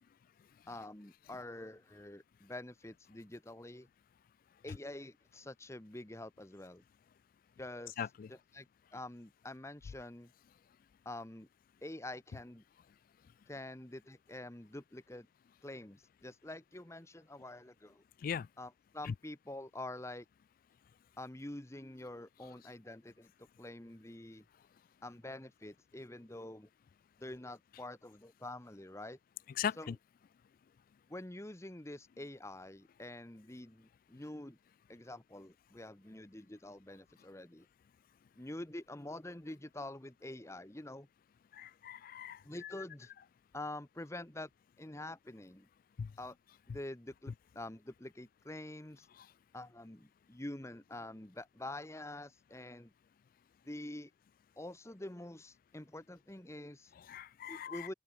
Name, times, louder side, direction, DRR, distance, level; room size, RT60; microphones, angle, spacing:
voice 1, 0.7-3.9 4.6-6.8 7.6-8.7 8.9-10.3 11.0-11.5 11.8-12.6 13.5-15.3 15.6-18.0 18.6-20.3 21.2-24.4 25.0-26.7 27.2-29.2 29.8-30.0 31.1-34.6 34.9-37.7 38.4-41.1 42.4-43.1 43.5-44.5 44.8-45.7 46.2-46.4 46.7-49.1 49.5-52.9 53.7-54.1 54.6-56.9 57.5-57.9, left 1 dB, 15° left, 1.1 m, -46 dB
voice 2, 8.0-8.3 18.2-18.5 19.1-19.2 29.6-29.9 41.6-42.4 46.0-46.1 57.1-57.9, left 8 dB, 50° left, 0.3 m, -38 dB
open air
head